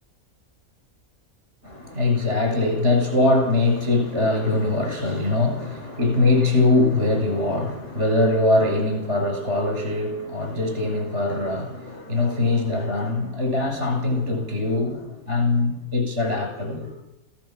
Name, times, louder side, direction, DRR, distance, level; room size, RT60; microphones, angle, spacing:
voice 1, 1.6-16.9, left 2 dB, 50° right, 7.8 m, -22 dB
20.0 x 17.0 x 7.8 m
omnidirectional pair, 1.6 m